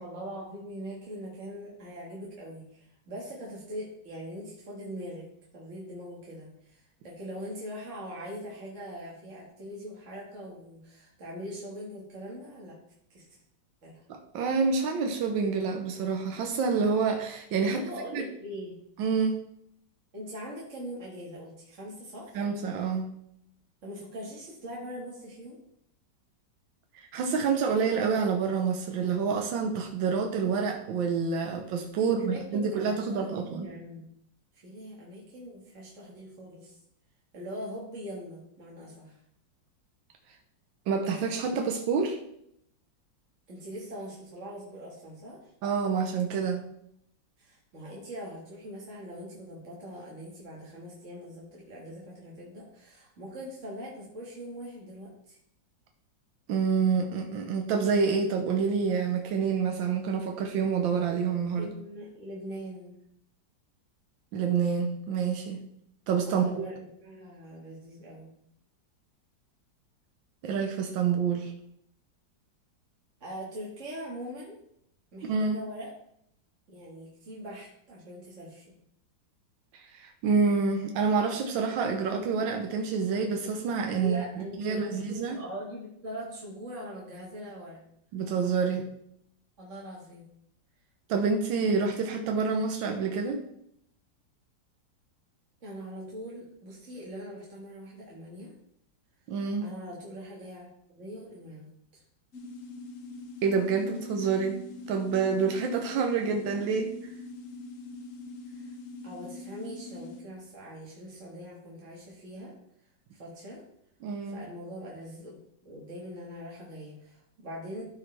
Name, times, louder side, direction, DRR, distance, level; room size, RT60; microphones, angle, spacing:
voice 1, 0.0-5.2 5.5-12.8 13.1-13.4 13.8-14.0 17.6-18.8 20.1-22.4 23.8-25.6 32.0-34.0 34.6-36.8 37.3-39.2 43.5-45.5 47.4-55.4 61.6-63.0 66.3-68.3 73.2-74.6 75.1-75.9 76.7-78.7 84.0-87.8 89.6-90.3 95.6-98.5 99.6-100.7 101.0-102.0 108.5-108.7 109.0-112.5 113.1-113.6 114.2-117.8, equal, 40° right, -4 dB, 1.9 m, -42 dB
voice 2, 14.1-17.8 18.1-18.2 19.0-19.4 22.3-23.1 26.9-33.7 40.9-42.2 45.6-46.7 56.5-61.7 64.3-65.7 66.1-66.7 70.4-71.5 75.2-75.6 79.7-85.4 88.1-88.9 91.1-93.4 99.3-99.6 103.4-104.6 104.9-106.9 114.0-114.4, right 5 dB, 85° right, 4 dB, 1.6 m, -28 dB
sound 1, 102.3-110.2, left 3 dB, 50° left, 1.1 m, -43 dB
13.0 x 4.9 x 3.3 m, 0.73 s
omnidirectional pair, 2.0 m